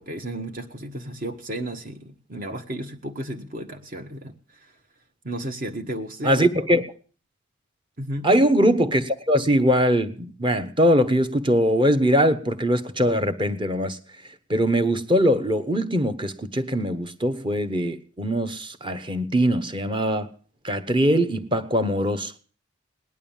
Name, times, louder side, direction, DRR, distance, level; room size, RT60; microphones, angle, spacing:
voice 1, 0.0-4.7 5.2-6.5 8.0-8.3, right 1 dB, 40° right, 1.2 m, -33 dB
voice 2, 6.2-6.8 8.2-14.0 14.5-20.3 20.6-22.3, equal, 25° right, 1.0 m, -21 dB
18.5 x 11.0 x 7.2 m
head